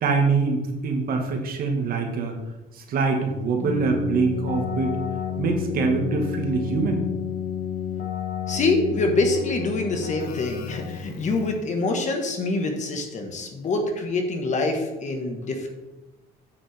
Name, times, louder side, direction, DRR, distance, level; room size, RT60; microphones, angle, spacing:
voice 1, 0.0-2.4 2.7-5.0 5.4-7.0, right 4 dB, 60° right, 3 dB, 1.7 m, -24 dB
Keyboard (musical), 3.6-11.7, left 9 dB, 60° left, 1.2 m, -31 dB
voice 2, 8.5-15.7, left 2 dB, 45° left, 4 dB, 1.5 m, -25 dB
8.8 x 6.8 x 3.5 m, 1.0 s
cardioid pair, 110°, 17 cm